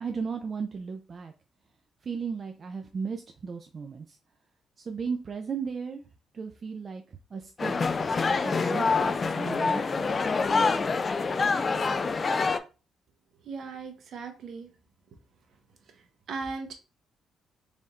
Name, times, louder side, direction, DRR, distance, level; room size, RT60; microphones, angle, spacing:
voice 1, 0.0-1.3 2.0-4.2 4.8-6.0 6.3-7.0 7.3-7.9 8.3-10.1, right 5 dB, 45° right, 4 dB, 0.4 m, -35 dB
sound 1, 7.6-12.6, left 4 dB, 35° left, 0.3 m, -26 dB
voice 2, 13.4-14.7 16.3-16.7, right 4 dB, 65° right, 5 dB, 0.9 m, -37 dB
4.1 x 3.4 x 2.4 m, 0.33 s
cardioid pair, 90°, 0 cm